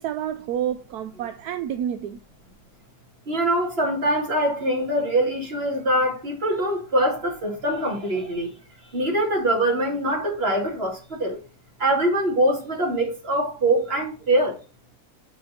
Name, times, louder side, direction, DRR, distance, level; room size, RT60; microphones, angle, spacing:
voice 1, 0.0-2.2, right 10 dB, 75° right, 1.1 m, -29 dB
voice 2, 3.3-8.5 8.9-11.4 11.8-14.6, right 1 dB, 35° right, 2.6 m, -23 dB
8.5 x 4.9 x 4.1 m
omnidirectional pair, 1.8 m